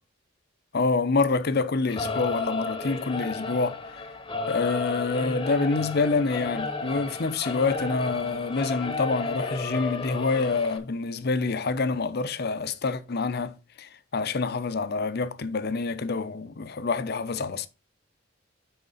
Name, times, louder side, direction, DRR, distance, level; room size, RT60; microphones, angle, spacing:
voice 1, 0.7-3.8 4.5-17.7, left 4 dB, 55° left, 0.7 m, -27 dB
Singing / Musical instrument, 1.9-10.8, left 3 dB, 25° left, 1.0 m, -33 dB
9.4 x 4.1 x 4.1 m
head